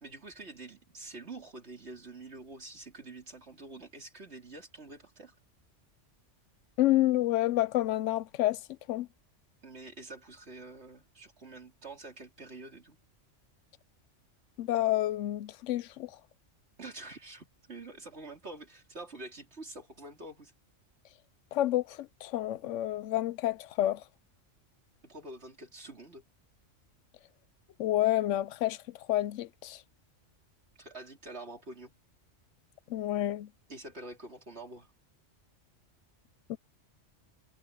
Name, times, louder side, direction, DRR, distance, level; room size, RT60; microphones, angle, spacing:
voice 1, 0.0-5.3 9.6-13.0 16.8-20.5 25.0-26.2 30.8-31.9 33.7-34.9, right 2 dB, 60° right, 3.9 m, -46 dB
voice 2, 6.8-8.6 8.9-9.1 14.6-16.1 21.5-24.0 27.8-28.8 29.1-29.8 32.9-33.5 36.5-36.6, left 14 dB, 80° left, 0.9 m, -29 dB
omnidirectional pair, 1.2 m